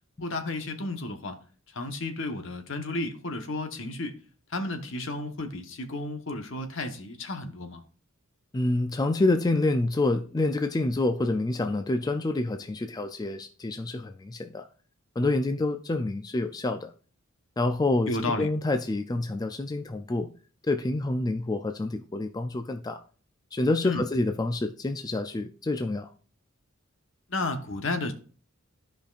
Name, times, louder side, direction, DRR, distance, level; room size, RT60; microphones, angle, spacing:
voice 1, 0.2-1.4 1.7-4.2 4.5-7.8 18.1-18.5 23.8-24.0 27.3-28.1, left 2 dB, 65° left, 1.1 m, -32 dB
voice 2, 8.5-14.7 15.2-16.9 17.6-20.3 20.6-23.0 23.5-26.1, left 2 dB, 20° left, 0.3 m, -27 dB
14.0 x 5.1 x 2.4 m
head